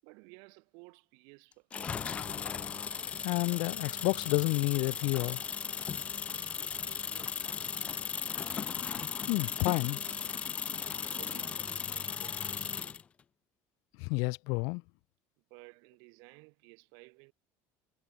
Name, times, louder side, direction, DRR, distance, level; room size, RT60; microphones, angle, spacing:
voice 1, 0.0-2.2 6.4-7.5 10.7-12.8 15.5-17.3, right 34 dB, 65° right, 7.2 m, -56 dB
sound 1, 1.7-13.0, left 7 dB, 20° left, 0.4 m, -37 dB
voice 2, 3.2-5.4 9.3-10.0 14.0-14.8, left 31 dB, 65° left, 0.6 m, -30 dB
cardioid pair, 180°, 7 cm